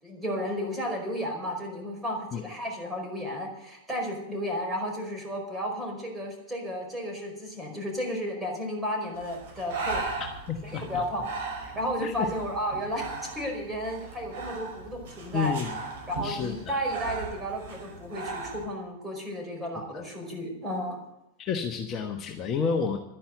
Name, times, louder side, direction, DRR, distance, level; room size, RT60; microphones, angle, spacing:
voice 1, 0.0-10.1 10.6-11.2 11.5-13.1 13.3-15.5 16.1-21.0, equal, 10° right, 0 dB, 4.9 m, -33 dB
Breathing, 9.1-18.6, right 4 dB, 50° right, 5.9 m, -38 dB
voice 2, 10.5-11.0 12.0-12.1 15.3-15.7 16.2-16.5 19.9-20.0 21.4-23.0, left 6 dB, 30° left, 3 dB, 1.2 m, -30 dB
12.5 x 10.5 x 7.8 m, 0.87 s
figure-of-eight pair, 90°, 0 cm